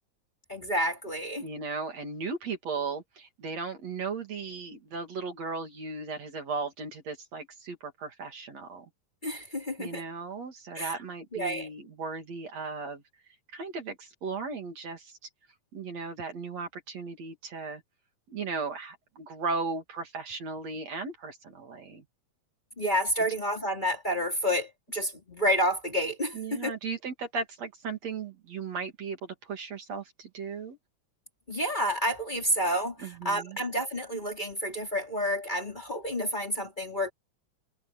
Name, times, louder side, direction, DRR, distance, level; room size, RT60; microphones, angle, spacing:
voice 1, 0.5-1.4 9.2-10.0 10.7-11.0 11.3-11.7 22.8-26.7 31.5-37.1, equal, 15° left, 3.5 m, -29 dB
voice 2, 1.4-8.9 9.8-13.0 13.5-15.1 15.7-17.8 18.3-22.0 26.3-30.8 33.0-33.6, right 4 dB, 55° right, 3.7 m, -36 dB
omnidirectional pair, 3.6 m